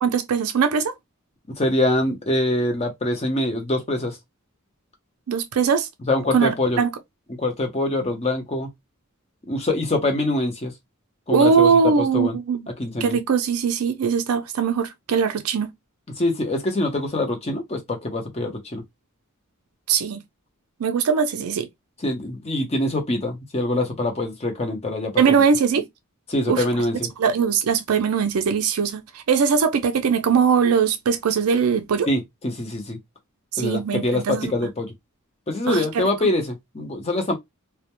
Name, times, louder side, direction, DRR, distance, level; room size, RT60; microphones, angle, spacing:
voice 1, 0.0-0.9 5.3-5.9 6.3-6.9 11.3-12.6 13.0-15.7 19.9-20.2 20.8-21.7 25.2-25.8 26.5-26.6 27.2-32.1 33.5-34.5 35.7-36.1, right 6 dB, 75° right, 0.4 m, -21 dB
voice 2, 1.5-4.2 6.1-6.8 7.4-8.7 9.5-10.7 11.3-11.7 12.0-12.4 12.8-13.2 16.2-18.8 22.0-25.4 26.3-27.1 32.1-33.0 33.6-34.9 35.5-37.4, left 1 dB, 30° left, 0.7 m, -24 dB
2.2 x 2.1 x 2.9 m
head